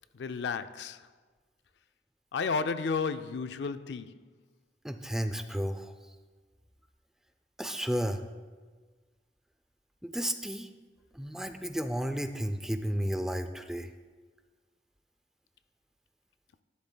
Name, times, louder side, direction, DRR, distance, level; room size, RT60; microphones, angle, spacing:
voice 1, 0.1-1.1 2.3-4.2, left 5 dB, 75° left, 0.4 m, -32 dB
voice 2, 4.8-5.9 7.6-8.2 10.0-10.7 11.1-13.9, equal, 5° right, 0.4 m, -32 dB
13.5 x 11.5 x 2.3 m
head